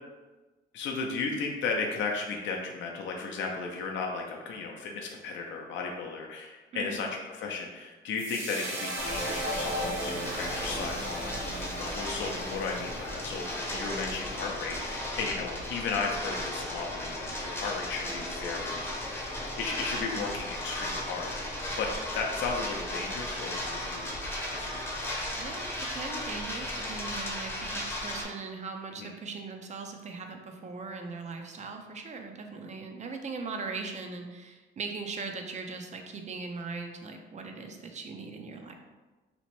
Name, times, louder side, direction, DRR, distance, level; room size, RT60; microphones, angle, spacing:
voice 1, 0.7-19.2 19.6-21.3 21.8-25.2 29.0-29.1, left 4 dB, 70° left, 0 dB, 0.4 m, -35 dB
voice 2, 6.7-7.1 20.0-20.3 25.4-38.7, right 4 dB, 35° right, 4 dB, 0.4 m, -40 dB
sound 1, 8.2-14.6, right 1 dB, 80° right, 0.7 m, -37 dB
sound 2, 9.0-28.2, left 1 dB, 10° left, 0.6 m, -36 dB
2.8 x 2.1 x 3.0 m, 1.2 s
cardioid pair, 90°, 20 cm